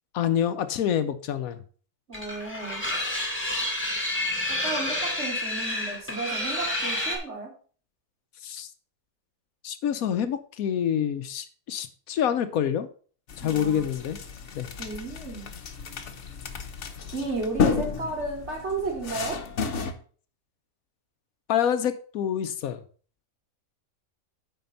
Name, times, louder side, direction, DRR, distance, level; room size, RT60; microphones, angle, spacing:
voice 1, 0.1-1.6 8.4-8.7 9.6-12.9 13.4-14.2 14.5-14.7 21.5-22.8, left 9 dB, 80° left, 11 dB, 1.1 m, -27 dB
sound 1, 2.1-7.2, left 1 dB, 10° left, 2.0 m, -29 dB
voice 2, 2.1-2.8 4.6-7.5 13.4-13.8 14.8-15.5 17.1-19.4, right 3 dB, 50° right, -1 dB, 3.1 m, -33 dB
sound 2, 13.3-19.9, left 6 dB, 60° left, 1.2 m, -32 dB
9.4 x 4.3 x 5.6 m, 0.42 s
omnidirectional pair, 1.5 m